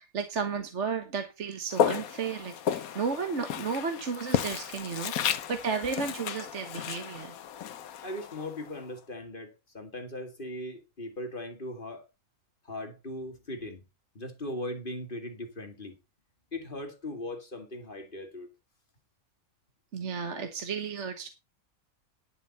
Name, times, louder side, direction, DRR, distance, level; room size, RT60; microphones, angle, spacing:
voice 1, 0.0-7.3 19.9-21.3, right 5 dB, 55° right, 1.6 m, -33 dB
Walk footsteps, 1.7-8.8, left 9 dB, 80° left, 1.3 m, -33 dB
voice 2, 8.0-12.1 12.6-13.8 14.1-16.0 16.5-18.5, left 1 dB, 35° left, 2.4 m, -39 dB
11.0 x 11.0 x 4.2 m
omnidirectional pair, 1.5 m